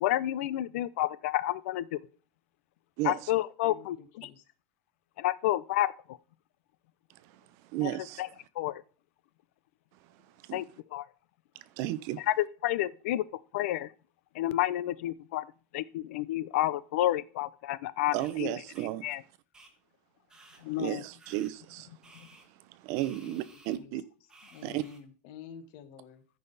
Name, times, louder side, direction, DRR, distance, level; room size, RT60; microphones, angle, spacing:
voice 1, 0.0-2.0 3.0-4.3 5.2-6.2 7.8-7.9 8.2-8.3 8.6-8.8 10.5-10.6 10.9-11.0 12.3-13.2 13.5-13.9 14.3-15.5 15.7-18.6 19.0-19.2 20.6-21.0, left 14 dB, 65° left, 0.6 m, -30 dB
voice 2, 3.0-3.3 7.1-8.2 10.1-10.6 11.5-12.3 18.1-19.1 20.7-21.9 22.3-24.0 24.6-24.8, right 14 dB, 40° right, 0.7 m, -35 dB
voice 3, 3.6-4.4 23.2-23.4 23.7-24.0 24.5-26.2, left 8 dB, 45° left, 1.3 m, -49 dB
sound 1, 18.2-18.3 18.7-18.9 19.5-19.7 20.3-20.6 21.2-21.5 22.0-22.5 22.9-23.8 24.3-25.0, right 2 dB, 10° right, 1.3 m, -56 dB
14.0 x 5.5 x 4.0 m
supercardioid pair, 175°, 8 cm